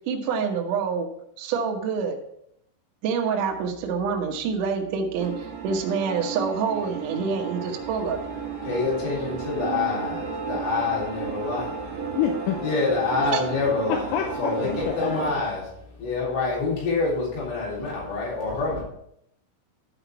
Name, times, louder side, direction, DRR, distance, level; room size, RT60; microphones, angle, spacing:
voice 1, 0.1-1.1 1.4-2.2 3.0-8.3 13.3-13.4, right 5 dB, 80° right, 1 dB, 1.8 m, -27 dB
sound 1, 5.2-15.3, right 5 dB, 60° right, 3.9 m, -33 dB
voice 2, 8.6-11.9 12.6-14.1 14.4-18.8, left 3 dB, 65° left, -5 dB, 5.8 m, -27 dB
voice 3, 12.2-12.6 13.9-15.3, left 9 dB, 85° left, 4 dB, 3.2 m, -27 dB
11.5 x 6.0 x 4.6 m, 0.73 s
omnidirectional pair, 5.7 m